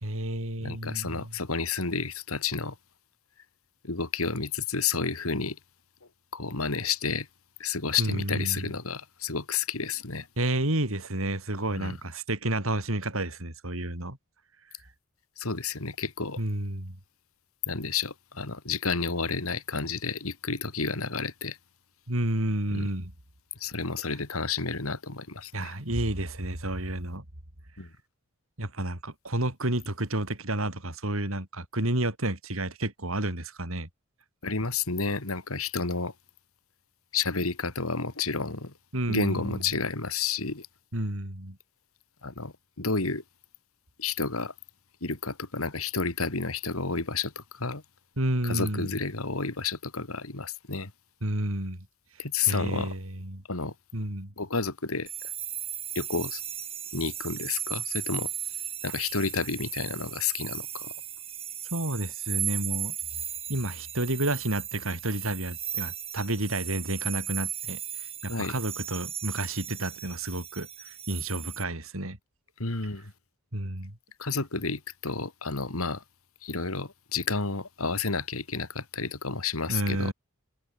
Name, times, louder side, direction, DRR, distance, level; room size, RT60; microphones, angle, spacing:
voice 1, 0.0-1.3 8.0-8.7 10.4-14.2 16.4-17.0 22.1-23.1 25.5-27.2 28.6-33.9 38.9-39.6 40.9-41.6 48.2-48.9 51.2-51.9 52.4-53.4 53.9-54.3 61.7-62.9 63.5-72.2 73.5-74.0 79.7-80.1, right 1 dB, 70° right, 4.6 m, -30 dB
voice 2, 0.6-2.7 3.8-5.6 6.3-7.3 7.6-10.3 11.7-12.0 15.4-16.4 17.7-21.6 22.7-22.9 23.6-25.7 27.8-27.9 34.4-36.1 37.1-38.7 39.1-40.7 42.2-43.2 44.0-44.5 45.0-47.8 48.4-50.9 52.2-52.9 53.5-53.7 54.4-55.1 55.9-56.4 56.9-58.3 58.8-60.9 68.3-68.6 72.6-73.1 74.2-76.0 76.4-80.1, left 4 dB, 75° left, 2.9 m, -31 dB
sound 1, 55.1-71.6, right 10 dB, 25° right, 3.6 m, -36 dB
head